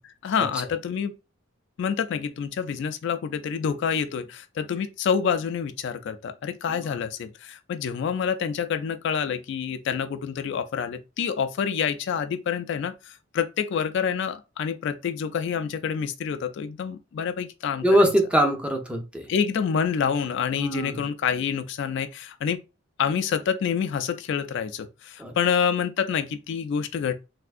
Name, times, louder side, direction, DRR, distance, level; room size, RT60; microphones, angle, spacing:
voice 1, 0.0-1.1 1.8-18.1 19.3-22.6 23.0-27.1, left 7 dB, 60° left, 0.3 m, -27 dB
voice 2, 17.8-19.3 20.6-21.0 25.2-25.3, equal, 5° right, 0.5 m, -22 dB
3.4 x 2.7 x 2.4 m
head